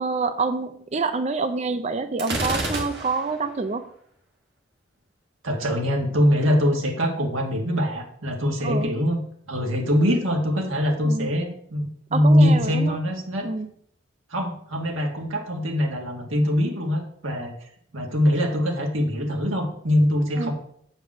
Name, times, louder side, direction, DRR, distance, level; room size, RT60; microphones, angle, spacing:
voice 1, 0.0-3.9 8.6-9.0 11.0-11.3 12.1-13.0 13.4-13.7 20.4-20.5, right 4 dB, 35° right, 9 dB, 0.4 m, -27 dB
Gunshot gunfire, 2.2-3.4, right 2 dB, 55° right, 2.0 m, -28 dB
voice 2, 5.4-9.2 9.5-13.5 14.3-17.5 17.9-20.5, equal, 80° right, 1 dB, 1.9 m, -23 dB
7.6 x 5.3 x 6.1 m, 0.65 s
head